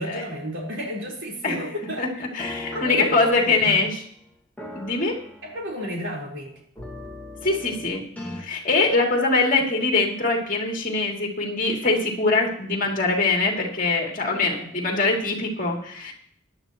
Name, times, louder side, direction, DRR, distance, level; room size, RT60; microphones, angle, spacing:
voice 1, 0.0-2.2 2.7-3.8 5.4-6.5 14.2-14.7, equal, 65° right, -2 dB, 4.1 m, -32 dB
voice 2, 2.0-4.0 4.7-5.2 7.4-8.0 8.4-16.1, left 3 dB, 40° left, 0 dB, 2.8 m, -23 dB
sound 1, 2.4-4.0 4.6-6.1 6.8-8.4, left 2 dB, 5° left, 1.9 m, -39 dB
17.5 x 11.5 x 3.0 m, 0.62 s
head